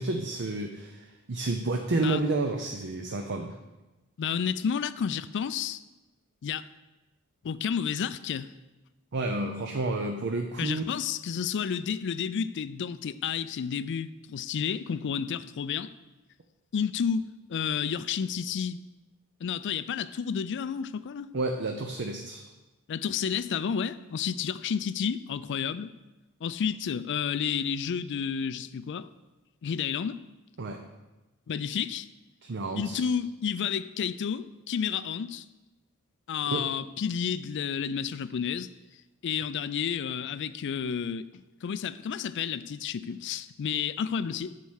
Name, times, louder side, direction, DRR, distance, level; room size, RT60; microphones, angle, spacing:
voice 1, 0.0-3.5 9.1-10.8 21.3-22.4 30.6-30.8 32.5-33.0 36.5-36.6, right 2 dB, 55° right, 4 dB, 0.6 m, -30 dB
voice 2, 4.2-5.8 6.4-6.7 7.4-8.5 10.6-15.9 16.7-18.8 19.4-21.3 22.9-25.9 26.4-29.1 29.6-30.2 31.5-32.1 32.8-35.4 36.3-38.7 39.2-41.3 41.6-44.5, left 7 dB, 55° left, 15 dB, 0.4 m, -31 dB
9.1 x 4.3 x 6.4 m, 1.1 s
head